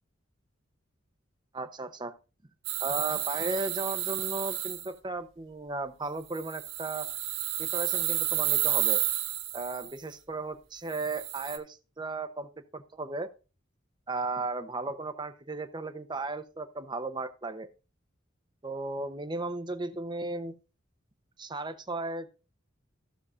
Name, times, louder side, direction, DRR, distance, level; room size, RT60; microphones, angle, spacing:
voice 1, 1.5-2.1 2.8-7.1 7.6-9.0 9.5-13.3 14.1-17.7 18.6-20.5 21.4-22.3, right 3 dB, 20° right, 9 dB, 0.7 m, -35 dB
sound 1, 2.6-4.9 6.3-9.9 10.9-11.6, right 14 dB, 80° right, 1.5 m, -31 dB
14.5 x 7.0 x 2.4 m, 0.32 s
head